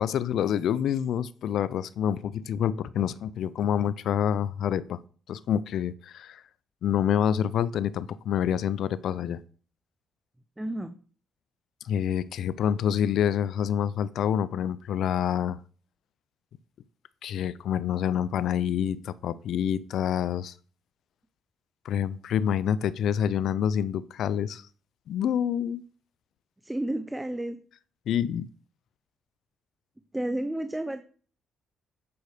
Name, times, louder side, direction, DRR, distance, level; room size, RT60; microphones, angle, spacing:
voice 1, 0.0-5.0 5.3-6.4 6.8-9.4 11.8-15.6 17.2-20.5 21.9-24.6 25.1-25.8 28.1-28.5, left 9 dB, 75° left, 0.5 m, -27 dB
voice 2, 10.6-10.9 26.6-27.6 30.1-31.0, right 1 dB, 10° right, 0.8 m, -31 dB
9.4 x 6.5 x 4.9 m
cardioid pair, 90°, 0 cm